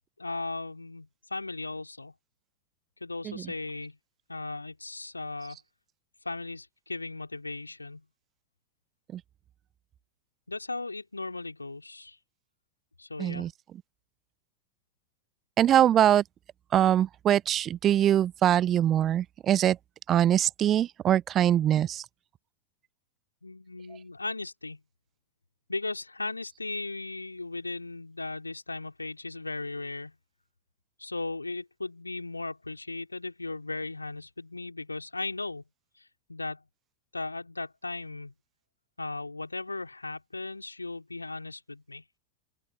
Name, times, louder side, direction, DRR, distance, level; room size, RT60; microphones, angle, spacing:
voice 1, 0.2-2.1 3.0-4.0 4.3-5.6 6.2-8.0 10.5-12.2 13.0-13.5 23.4-24.8 25.7-30.1 31.0-35.6 36.0-36.6 37.1-38.3 39.0-42.0, left 3 dB, 80° left, 3.5 m, -37 dB
voice 2, 13.2-13.5 15.6-16.2 16.7-19.8 20.1-22.0, right 11 dB, 30° right, 0.7 m, -23 dB
open air
figure-of-eight pair, 90°, 0 cm